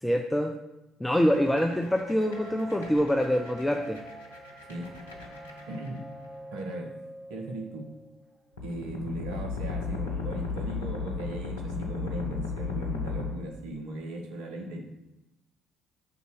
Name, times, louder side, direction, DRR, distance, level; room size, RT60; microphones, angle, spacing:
voice 1, 0.0-0.5 1.0-4.0, equal, 10° left, 3 dB, 0.5 m, -25 dB
sound 1, 1.2-6.2 8.6-13.3, left 4 dB, 85° left, 0.8 m, -36 dB
sound 2, 1.3-8.6, right 1 dB, 20° right, 0.8 m, -46 dB
voice 2, 5.7-6.1 6.5-7.0 7.3-7.9 8.6-14.8, right 1 dB, 70° right, 2 dB, 1.0 m, -37 dB
5.7 x 4.1 x 6.1 m, 0.94 s
figure-of-eight pair, 50°, 0 cm